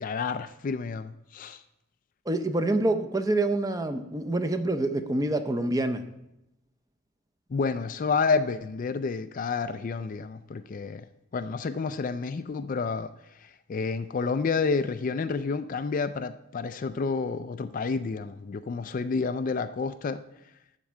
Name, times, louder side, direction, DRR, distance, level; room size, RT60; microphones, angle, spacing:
voice 1, 0.0-1.6 7.5-11.0 11.3-13.1 13.4-20.2, left 4 dB, 40° left, 11 dB, 0.3 m, -29 dB
voice 2, 2.3-6.0, right 2 dB, 15° right, 8 dB, 0.6 m, -26 dB
12.0 x 4.5 x 7.4 m, 0.88 s
head